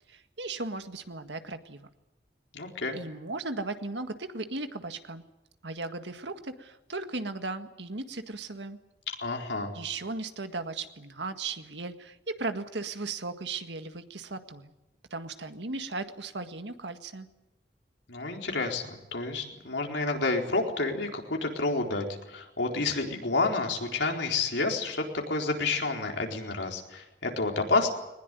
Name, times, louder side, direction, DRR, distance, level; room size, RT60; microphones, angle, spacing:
voice 1, 0.1-1.9 2.9-5.2 5.6-8.8 9.7-14.7 15.1-17.3, right 3 dB, 85° right, 8 dB, 1.8 m, -36 dB
voice 2, 2.5-3.0 9.2-9.7 18.1-27.9, left 3 dB, 85° left, 2 dB, 4.2 m, -29 dB
21.0 x 20.0 x 9.4 m, 0.98 s
head